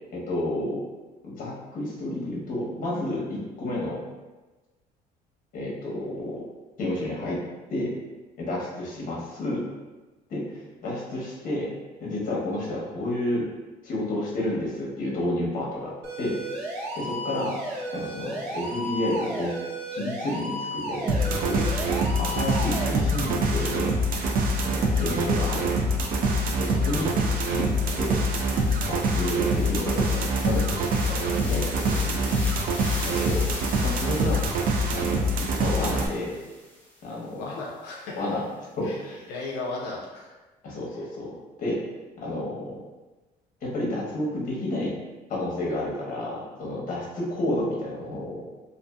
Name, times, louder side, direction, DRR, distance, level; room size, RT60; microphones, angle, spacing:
voice 1, 0.1-0.8 1.2-4.0 5.5-6.4 6.8-7.4 7.7-7.9 8.4-9.6 10.3-11.7 12.0-13.5 13.8-16.4 16.9-17.6 17.9-19.5 19.9-21.7 22.2-23.9 24.6-25.7 26.6-27.2 27.4-28.2 28.9-32.3 33.0-33.5 33.8-34.5 34.9-36.4 37.0-37.5 38.2-38.4 38.8-39.2 40.6-41.3 41.6-41.8 42.2-42.8 43.6-45.0 45.3-48.5, left 1 dB, 55° left, -4 dB, 0.9 m, -30 dB
sound 1, 16.0-22.9, right 1 dB, 80° right, 0.8 m, -33 dB
sound 2, 21.1-36.1, right 1 dB, 60° right, 0.4 m, -25 dB
sound 3, 26.7-37.1, equal, 10° left, 0.7 m, -42 dB
voice 2, 37.4-38.3 38.8-39.0 39.3-40.4, left 3 dB, 80° left, -3 dB, 0.4 m, -35 dB
2.5 x 2.4 x 2.3 m, 1.2 s
cardioid pair, 110°, 17 cm